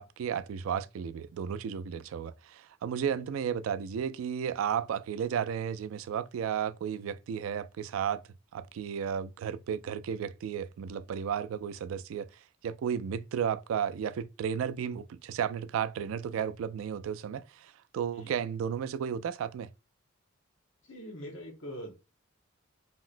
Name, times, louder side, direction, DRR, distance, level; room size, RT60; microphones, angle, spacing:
voice 1, 0.0-8.2 8.5-12.3 12.6-19.7, right 8 dB, 90° right, 0.3 m, -33 dB
voice 2, 20.8-21.9, equal, 70° left, 1.2 m, -43 dB
2.9 x 2.8 x 2.5 m
head